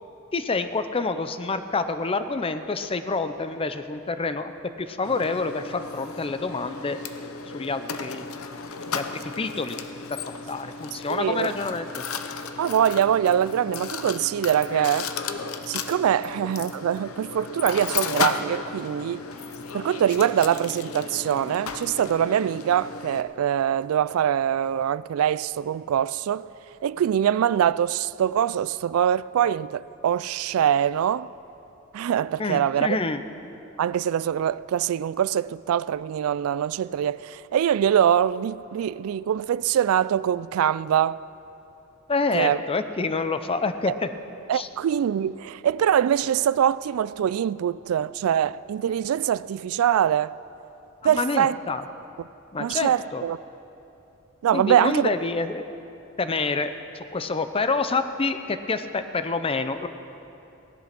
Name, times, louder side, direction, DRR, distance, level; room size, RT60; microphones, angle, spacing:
voice 1, 0.3-4.5 4.8-7.0 7.5-8.3 8.9-9.8 10.5-12.0 32.4-33.2 42.1-44.1 44.5-44.7 51.0-51.8 52.5-53.2 54.5-55.7 56.2-59.9, left 3 dB, 25° left, 0.6 m, -27 dB
Mechanisms, 5.0-23.2, left 5 dB, 85° left, 0.8 m, -34 dB
voice 2, 11.1-11.5 12.6-15.1 15.7-19.2 19.7-26.5 26.8-31.3 31.9-33.0 33.8-41.2 42.3-42.6 44.5-50.3 51.0-51.6 52.6-53.4 54.4-55.1, right 9 dB, 80° right, 0.3 m, -23 dB
17.0 x 11.5 x 6.0 m
head